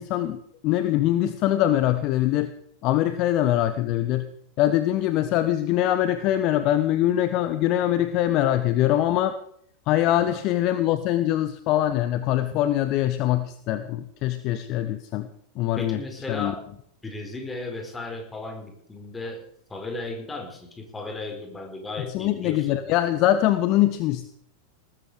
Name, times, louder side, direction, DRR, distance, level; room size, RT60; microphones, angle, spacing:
voice 1, 0.0-2.5 2.8-4.3 4.6-9.3 9.9-15.3 15.6-16.0 16.3-16.5 22.1-24.3, left 13 dB, 40° left, 12 dB, 1.0 m, -23 dB
voice 2, 15.8-19.4 19.7-22.8, left 2 dB, 10° left, 3 dB, 4.8 m, -35 dB
19.0 x 13.5 x 5.0 m, 0.66 s
figure-of-eight pair, 90°, 0 cm